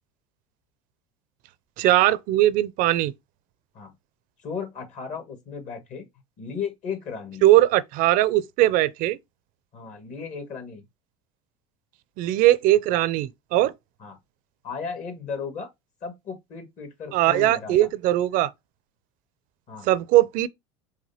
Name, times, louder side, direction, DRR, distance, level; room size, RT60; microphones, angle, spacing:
voice 1, 1.8-3.1 7.4-9.2 12.2-13.7 17.1-18.5 19.8-20.5, right 15 dB, 55° right, 0.5 m, -20 dB
voice 2, 4.4-6.1 6.4-7.4 9.7-10.9 14.0-14.2 14.6-15.7 16.0-17.9 19.7-19.9, left 5 dB, 45° left, 1.8 m, -35 dB
4.8 x 3.4 x 2.8 m
hypercardioid pair, 85°, 17 cm